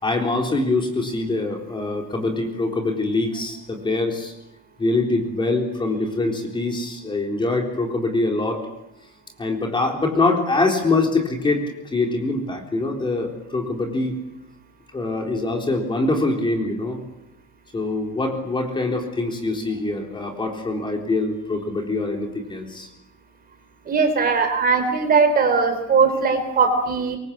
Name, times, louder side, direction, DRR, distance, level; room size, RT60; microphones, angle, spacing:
voice 1, 0.0-4.3 4.8-8.6 9.4-11.7 11.9-14.2 14.9-17.0 17.7-22.9, left 2 dB, 15° left, 2 dB, 3.9 m, -24 dB
voice 2, 23.9-27.2, right 5 dB, 25° right, 8 dB, 3.7 m, -19 dB
26.5 x 23.5 x 8.6 m, 0.84 s
cardioid pair, 180°, 33 cm